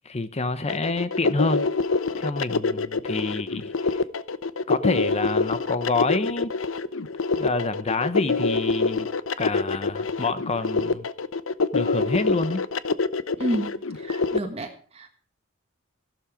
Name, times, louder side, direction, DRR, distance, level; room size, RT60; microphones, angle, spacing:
voice 1, 0.0-1.7 2.2-4.0 4.7-6.5 7.4-9.1 9.4-11.1 11.7-12.6, left 3 dB, 30° left, 0.8 m, -27 dB
sound 1, 0.7-14.4, left 4 dB, 70° left, 0.8 m, -25 dB
voice 2, 13.4-13.7 13.9-15.1, right 1 dB, 30° right, 1.6 m, -30 dB
15.0 x 12.0 x 4.9 m
head